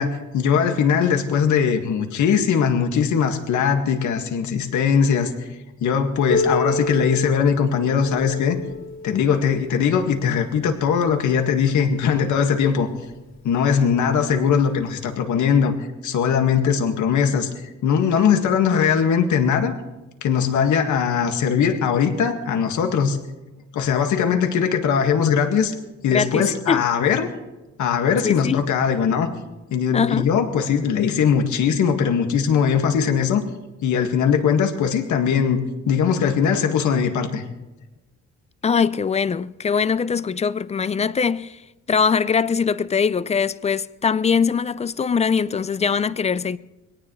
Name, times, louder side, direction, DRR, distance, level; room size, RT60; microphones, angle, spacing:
voice 1, 0.0-5.3 5.8-8.6 9.0-12.9 13.4-19.7 20.2-23.2 23.7-25.7 26.0-27.3 27.8-29.3 29.7-33.4 33.8-35.6 35.9-37.4, left 7 dB, 85° left, 1.9 m, -20 dB
Piano, 6.3-11.6 12.5-12.6 13.1-13.2 14.0-14.1 15.1-15.2, left 3 dB, 65° left, 3.6 m, -29 dB
voice 2, 26.1-26.8 28.2-28.6 29.9-30.3 38.6-41.6 41.9-46.6, left 6 dB, 25° left, 0.4 m, -22 dB
23.0 x 18.0 x 3.2 m
cardioid pair, 140°, 29 cm